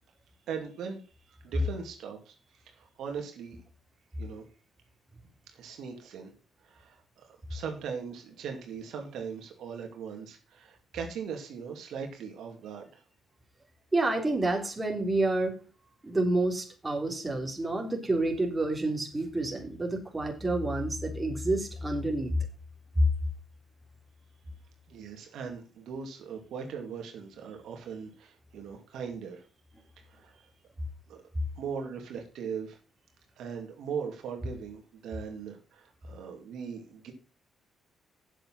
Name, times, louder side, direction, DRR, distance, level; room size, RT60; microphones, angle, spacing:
voice 1, 0.5-1.2 1.4-2.3 2.6-3.6 4.2-4.4 5.5-6.3 6.6-13.0 24.9-29.4 30.0-30.5 31.1-31.2 31.6-32.8 33.4-37.1, right 6 dB, 80° right, 3 dB, 2.6 m, -39 dB
voice 2, 13.9-15.6 16.0-22.3, right 2 dB, 20° right, 1 dB, 3.6 m, -29 dB
8.9 x 7.7 x 5.7 m, 0.36 s
cardioid pair, 90°, 0 cm